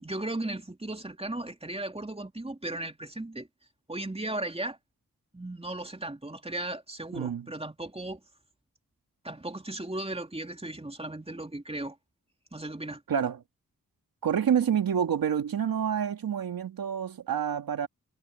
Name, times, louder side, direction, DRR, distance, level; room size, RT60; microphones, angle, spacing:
voice 1, 0.0-3.5 3.9-4.8 5.3-8.2 9.2-12.0 12.5-13.0, right 2 dB, 15° right, 2.8 m, -36 dB
voice 2, 7.1-7.5 13.1-13.4 14.2-17.9, right 8 dB, 80° right, 2.4 m, -28 dB
cardioid pair, 40°, 34 cm